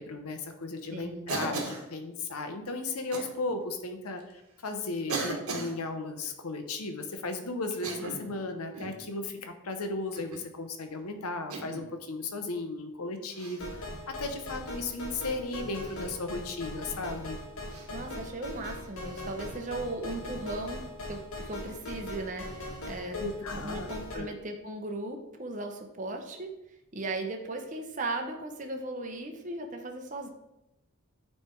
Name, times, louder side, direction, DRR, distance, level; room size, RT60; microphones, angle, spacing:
voice 1, 0.0-17.4 23.1-24.3, left 3 dB, 90° left, 6 dB, 0.8 m, -36 dB
voice 2, 0.9-1.3 17.9-23.2 23.5-26.5 26.9-30.3, right 2 dB, 35° right, 3 dB, 0.7 m, -37 dB
Cough, 1.3-1.9 3.1-3.3 4.2-4.3 5.1-5.7 7.7-8.3 8.7-9.0 10.1-10.5 11.5-11.9 13.3-13.6 15.8-16.0 17.7-17.9, right 3 dB, 90° right, 1.2 m, -36 dB
sound 1, 13.6-24.2, left 1 dB, 70° left, 1.6 m, -40 dB
8.9 x 3.3 x 4.5 m, 0.90 s
head